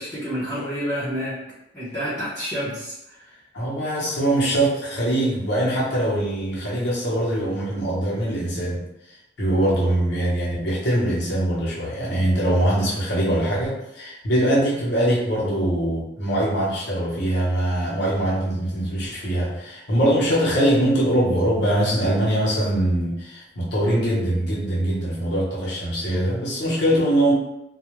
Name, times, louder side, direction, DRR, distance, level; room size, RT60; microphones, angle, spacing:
voice 1, 0.0-1.4 1.7-3.4, equal, 10° left, -12 dB, 0.8 m, -29 dB
voice 2, 3.5-27.3, right 1 dB, 65° left, -6 dB, 0.9 m, -22 dB
2.3 x 2.3 x 2.9 m, 0.87 s
head